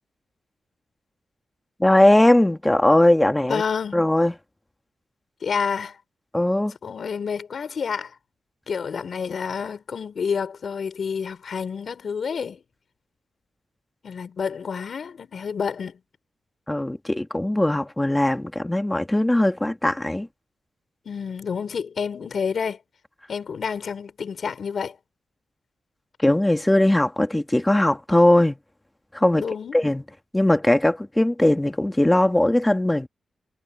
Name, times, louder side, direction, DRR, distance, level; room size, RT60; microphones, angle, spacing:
voice 1, 1.8-3.6 3.9-4.3 6.3-6.8 16.7-20.3 26.2-28.6 29.1-29.4 29.7-30.0 30.3-33.1, left 1 dB, 10° left, 1.8 m, -19 dB
voice 2, 3.5-4.0 5.4-6.0 6.8-8.1 8.7-12.6 14.0-16.0 21.0-22.8 23.3-25.0 29.4-29.8, left 6 dB, 60° left, 5.0 m, -29 dB
cardioid pair, 95°, 0 cm